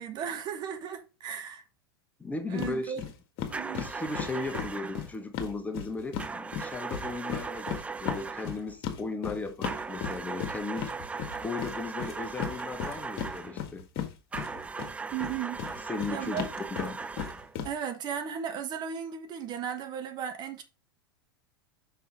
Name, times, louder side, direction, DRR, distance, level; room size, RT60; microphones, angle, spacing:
voice 1, 0.0-1.6 2.5-3.0 3.5-3.9 15.1-15.6 16.1-16.5 17.6-20.6, right 8 dB, 35° right, 1.4 m, -35 dB
voice 2, 2.2-3.1 3.7-10.9 11.4-13.9 15.9-16.5 16.8-17.0, left 3 dB, 10° left, 1.0 m, -36 dB
sound 1, 2.6-2.7 3.0-3.1 3.4-6.3 6.5-14.9 15.2-17.7, left 8 dB, 45° left, 1.7 m, -35 dB
sound 2, 3.5-5.1 6.2-8.6 9.6-13.6 14.3-17.6, right 4 dB, 10° right, 0.4 m, -38 dB
5.6 x 5.6 x 4.9 m
figure-of-eight pair, 90°, 12 cm